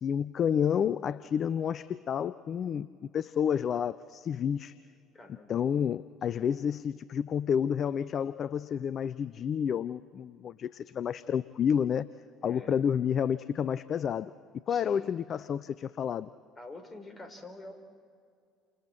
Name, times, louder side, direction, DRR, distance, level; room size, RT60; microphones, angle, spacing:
voice 1, 0.0-2.9 3.1-4.8 5.5-12.1 12.4-14.3 14.7-16.3, left 8 dB, 45° left, 17 dB, 0.5 m, -30 dB
voice 2, 5.1-5.5 12.4-12.8 14.7-15.1 16.6-17.7, left 2 dB, 25° left, 6 dB, 4.2 m, -47 dB
29.5 x 27.0 x 4.4 m, 2.2 s
figure-of-eight pair, 60°, 0 cm